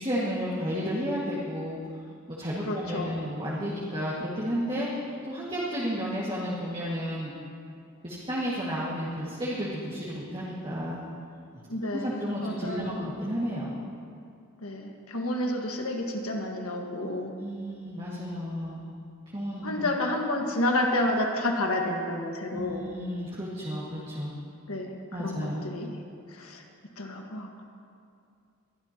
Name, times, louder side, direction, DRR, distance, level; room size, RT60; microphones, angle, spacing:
voice 1, 0.0-1.8 2.4-7.3 8.0-11.0 11.9-13.8 17.4-18.9 19.3-19.9 22.5-24.3 25.1-25.7, equal, 25° right, -7 dB, 1.9 m, -32 dB
voice 2, 2.6-3.2 11.7-13.1 14.6-17.3 19.6-22.8 24.7-25.9 26.3-26.6 27.0-27.6, left 1 dB, 75° left, 2 dB, 1.6 m, -30 dB
22.0 x 13.5 x 3.0 m, 2.5 s
head